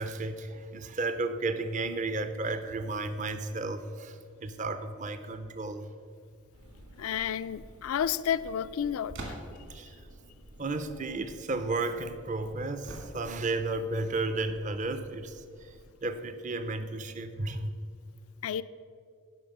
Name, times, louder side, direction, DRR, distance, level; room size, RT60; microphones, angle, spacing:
voice 1, 0.0-5.9 9.7-10.0 10.6-15.8 16.0-17.7, right 3 dB, 35° right, 10 dB, 0.5 m, -33 dB
sound 1, 6.5-15.9, right 1 dB, 75° right, 1.7 m, -54 dB
voice 2, 7.0-9.1 18.4-18.6, left 9 dB, 70° left, 15 dB, 0.3 m, -31 dB
sound 2, 9.1-9.8 12.8-13.6, right 1 dB, 55° right, 1.9 m, -42 dB
11.0 x 5.6 x 6.5 m, 2.2 s
head